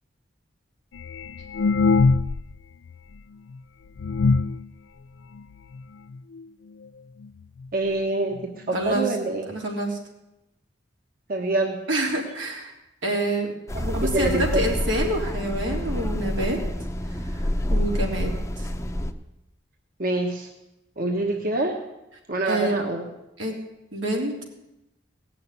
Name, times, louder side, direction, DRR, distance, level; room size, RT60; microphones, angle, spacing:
sound 1, 0.9-2.6 2.9-3.0 3.6-3.7 4.0-4.7 5.4-5.5 5.8-5.9 6.1-6.4 7.2-7.3 7.6-7.7 8.3-8.4 8.7-8.8, left 4 dB, 75° left, 0.4 m, -22 dB
voice 1, 7.7-8.4 8.7-9.4 11.3-11.8 14.0-14.6 20.0-20.5 21.0-21.8 22.3-23.0, right 2 dB, 50° right, 2 dB, 1.4 m, -25 dB
voice 2, 8.7-9.1 9.5-10.0 11.9-12.7 13.0-13.5 13.8-16.6 17.3-17.4 17.7-18.7 22.4-22.8 23.4-23.5 23.9-24.4, right 1 dB, 90° right, 0 dB, 3.5 m, -27 dB
sound 2, 13.7-19.1, left 1 dB, 15° left, 0.8 m, -27 dB
18.0 x 6.8 x 9.4 m, 0.91 s
head